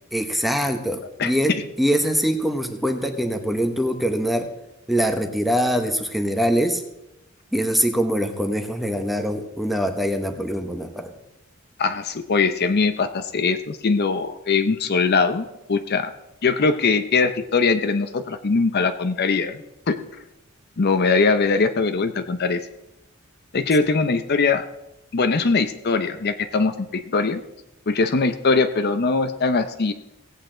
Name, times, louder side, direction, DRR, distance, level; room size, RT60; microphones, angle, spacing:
voice 1, 0.1-4.5 4.9-6.8 7.5-11.1, equal, ahead, 5 dB, 1.0 m, -23 dB
voice 2, 11.8-16.1 16.4-20.0 20.8-22.6 23.5-24.6 25.1-27.4 27.9-29.9, left 4 dB, 50° left, 8 dB, 0.6 m, -21 dB
17.0 x 8.2 x 3.9 m, 0.90 s
head